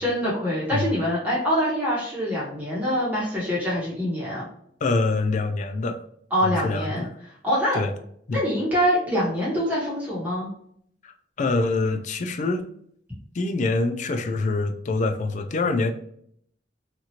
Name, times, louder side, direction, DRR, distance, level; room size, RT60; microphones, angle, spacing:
voice 1, 0.0-4.5 6.3-7.1 7.4-7.8 8.3-10.5, equal, 10° right, -8 dB, 1.1 m, -24 dB
voice 2, 4.8-6.0 6.4-7.1 7.7-7.9 8.3-8.4 11.0-12.7 13.3-15.9, left 3 dB, 45° left, 6 dB, 0.4 m, -25 dB
2.9 x 2.5 x 2.8 m, 0.66 s
head